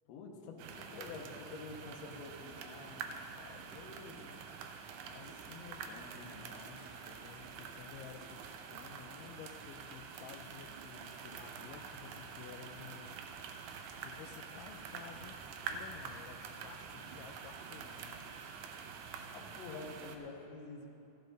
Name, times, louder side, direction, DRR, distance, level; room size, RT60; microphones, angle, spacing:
voice 1, 0.1-4.4 5.1-6.9 19.3-20.9, left 4 dB, 65° left, 1 dB, 1.9 m, -49 dB
sound 1, 0.6-20.2, right 6 dB, 75° right, 2.0 m, -47 dB
voice 2, 7.0-8.4 8.7-13.2 14.0-18.3, left 9 dB, 85° left, 6 dB, 2.1 m, -53 dB
14.0 x 12.0 x 3.9 m, 2.9 s
omnidirectional pair, 3.8 m